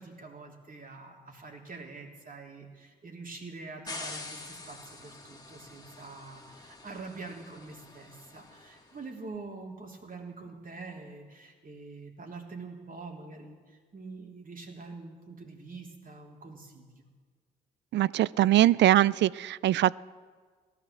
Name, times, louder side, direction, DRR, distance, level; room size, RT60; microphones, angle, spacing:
voice 1, 0.0-17.0, right 3 dB, 45° right, 2 dB, 3.3 m, -45 dB
sound 1, 3.9-9.0, left 2 dB, 20° left, 2.3 m, -46 dB
voice 2, 17.9-20.0, right 14 dB, 60° right, 21 dB, 0.4 m, -22 dB
17.0 x 11.0 x 7.5 m, 1.5 s
hypercardioid pair, 45°, 20 cm